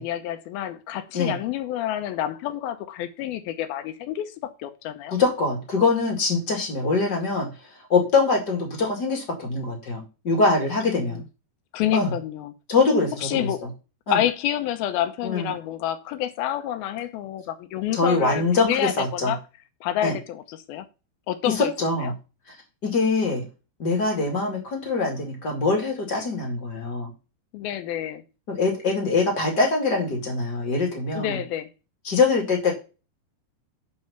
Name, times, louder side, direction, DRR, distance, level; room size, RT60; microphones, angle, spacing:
voice 1, 0.0-5.2 10.8-11.2 11.7-12.5 13.2-13.6 14.1-19.4 19.8-20.9 21.3-21.7 22.0-22.1 27.5-28.2 31.1-31.7, left 11 dB, 75° left, 2.4 m, -28 dB
voice 2, 5.1-7.5 7.9-11.2 11.9-12.1 12.7-13.5 14.1-14.2 15.2-15.5 18.0-19.3 20.0-20.2 21.5-22.1 22.8-23.4 23.8-27.1 28.5-31.4 32.0-32.7, left 3 dB, 35° left, 1.9 m, -23 dB
7.6 x 4.8 x 5.6 m
omnidirectional pair, 4.7 m